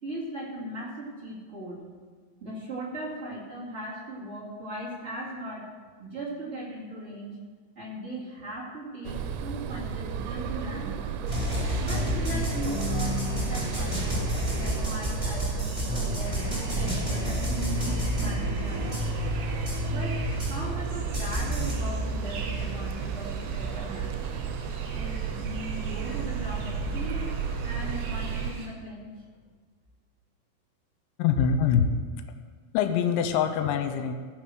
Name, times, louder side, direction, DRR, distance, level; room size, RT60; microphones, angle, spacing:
voice 1, 0.0-1.8 2.4-5.7 6.0-7.4 7.7-11.2 11.8-14.2 14.5-15.8 16.1-19.0 19.9-24.2 24.9-27.3 27.6-29.2, right 1 dB, 35° right, -6 dB, 1.1 m, -38 dB
sound 1, 9.0-28.5, right 8 dB, 85° right, 3.3 m, -34 dB
sound 2, 11.3-20.8 21.1-21.7, left 1 dB, 10° right, 1.8 m, -30 dB
sound 3, 18.7-28.7, right 1 dB, 65° right, 4.1 m, -37 dB
voice 2, 31.2-31.9 32.7-34.1, left 7 dB, 75° left, 7 dB, 2.9 m, -24 dB
15.5 x 6.6 x 6.3 m, 1.5 s
omnidirectional pair, 5.8 m